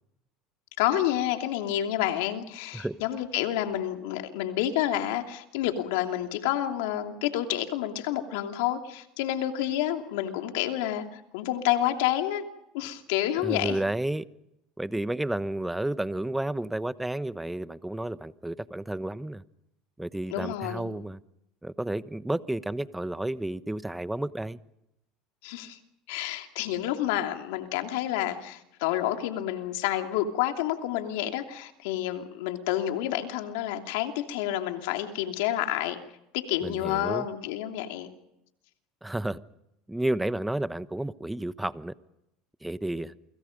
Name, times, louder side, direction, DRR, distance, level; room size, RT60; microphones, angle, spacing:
voice 1, 0.8-12.4 12.7-13.8 20.3-21.0 25.4-25.8 26.1-36.0 36.3-38.1, left 12 dB, 75° left, 5 dB, 2.8 m, -29 dB
voice 2, 13.4-14.2 14.8-19.4 20.0-21.2 21.6-24.6 36.6-37.3 39.0-39.4 39.9-41.9 42.6-43.1, right 1 dB, 5° right, 14 dB, 1.1 m, -31 dB
29.0 x 25.0 x 5.3 m, 0.85 s
supercardioid pair, 100°, 0 cm